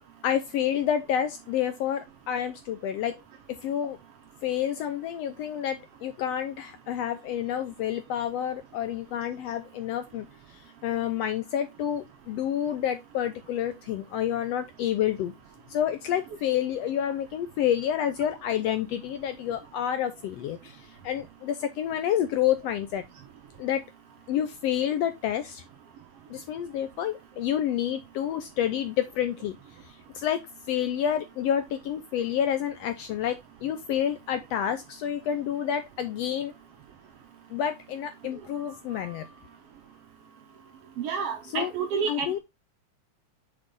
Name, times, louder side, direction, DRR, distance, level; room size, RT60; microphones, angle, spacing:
voice 1, 0.2-3.2 3.5-4.0 4.4-15.3 15.7-23.0 23.6-23.8 24.3-25.6 26.3-29.6 29.8-30.4 30.7-36.5 37.5-39.3 41.5-41.7 42.1-42.4, left 10 dB, 80° left, 1.5 m, -29 dB
voice 2, 41.0-42.4, right 6 dB, 70° right, 1.5 m, -29 dB
6.5 x 4.9 x 3.7 m
omnidirectional pair, 3.4 m